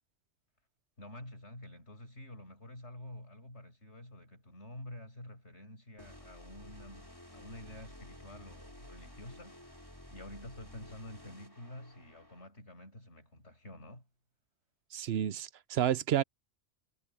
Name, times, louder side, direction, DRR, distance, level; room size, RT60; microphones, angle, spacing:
voice 1, 1.0-14.1, left 1 dB, 80° left, 7.1 m, -49 dB
sound 1, 6.0-12.5, left 1 dB, 20° left, 5.3 m, -53 dB
voice 2, 14.9-16.2, right 10 dB, 70° right, 0.8 m, -30 dB
omnidirectional pair, 1.1 m